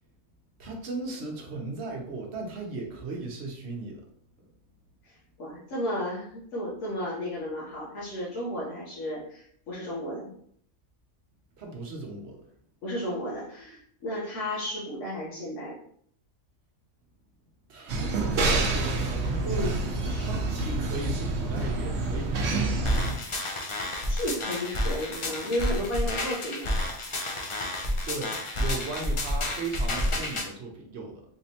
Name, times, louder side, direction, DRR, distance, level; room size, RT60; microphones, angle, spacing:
voice 1, 0.6-4.0 11.6-12.4 17.7-19.8 20.2-23.0 28.1-31.2, right 3 dB, 65° right, 1 dB, 1.0 m, -37 dB
voice 2, 5.0-10.3 12.8-15.8 19.4-19.8 20.1-20.3 24.1-26.7, left 1 dB, 80° left, -6 dB, 1.2 m, -33 dB
sound 1, 17.9-23.1, right 2 dB, 90° right, 1.0 m, -27 dB
sound 2, 22.8-30.5, left 1 dB, 40° left, 0.4 m, -30 dB
3.5 x 3.1 x 2.8 m, 0.65 s
omnidirectional pair, 1.2 m